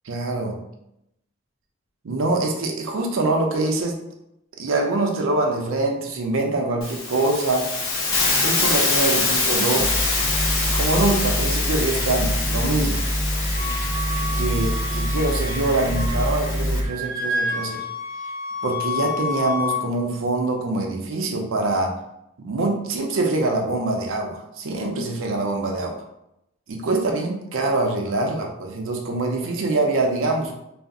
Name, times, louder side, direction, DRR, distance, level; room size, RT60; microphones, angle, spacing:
voice 1, 0.0-0.6 2.0-4.0 4.6-7.7 8.4-9.9 10.7-13.1 14.2-17.8 18.6-22.0 22.4-26.0 26.7-30.5, right 2 dB, 85° right, 2 dB, 0.5 m, -24 dB
Hiss, 6.8-16.8, left 3 dB, 85° left, 0.6 m, -25 dB
sound 1, 9.8-16.9, equal, 15° right, 0.4 m, -25 dB
Wind instrument woodwind instrument, 13.5-16.5 16.7-19.8, left 2 dB, 50° left, 1.0 m, -29 dB
2.4 x 2.0 x 3.6 m, 0.83 s
head